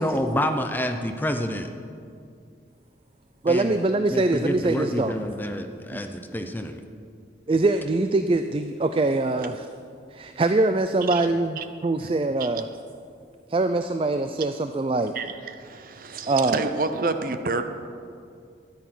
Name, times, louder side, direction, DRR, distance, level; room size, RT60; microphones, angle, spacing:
voice 1, 0.0-1.7 3.5-3.8 4.1-6.8, equal, 10° left, 6 dB, 0.7 m, -28 dB
voice 2, 3.4-5.1 5.9-6.0 7.5-9.7 10.1-12.7 13.5-15.1 16.3-16.7, right 2 dB, 30° right, 8 dB, 0.4 m, -23 dB
voice 3, 15.1-17.6, right 3 dB, 50° right, 8 dB, 0.7 m, -29 dB
13.0 x 10.5 x 6.1 m, 2.4 s
head